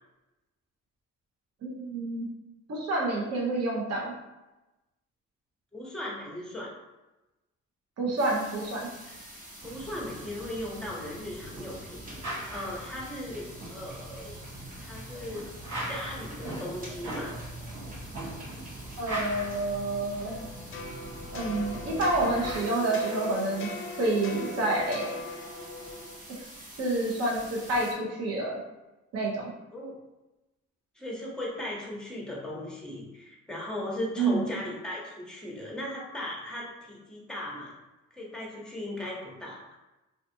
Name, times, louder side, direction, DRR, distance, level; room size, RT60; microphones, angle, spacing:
voice 1, 1.6-2.3 2.7-4.1 8.0-8.8 19.0-20.4 21.3-23.7 24.0-25.1 26.3-26.4 26.8-28.5 29.1-29.4 34.2-34.6, right 2 dB, 55° right, -3 dB, 0.7 m, -28 dB
voice 2, 5.7-6.7 9.4-14.4 14.8-15.5 15.9-17.4 29.7-30.0 30.9-37.8 38.1-39.6, left 1 dB, 5° left, -3 dB, 0.8 m, -37 dB
sound 1, 8.2-27.9, right 1 dB, 30° right, 0.8 m, -48 dB
sound 2, 9.6-22.6, right 1 dB, 90° right, 1.0 m, -40 dB
sound 3, 20.3-26.2, left 2 dB, 45° left, 0.5 m, -39 dB
2.5 x 2.3 x 2.6 m, 1.0 s
cardioid pair, 90°, 30 cm